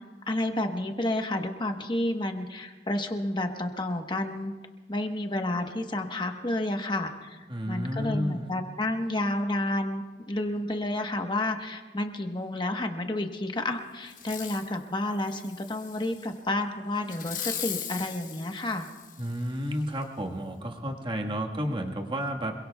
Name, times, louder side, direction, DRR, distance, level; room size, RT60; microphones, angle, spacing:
voice 1, 0.0-4.5 4.9-7.4 7.7-18.9, left 1 dB, 25° left, 5 dB, 1.1 m, -30 dB
voice 2, 7.5-8.5 19.2-22.5, equal, 30° right, 1 dB, 1.5 m, -31 dB
Fireworks, 14.1-14.7 15.2-16.3 17.1-19.5 20.0-20.1, left 9 dB, 50° left, 1.2 m, -39 dB
26.5 x 22.5 x 2.3 m, 1.3 s
head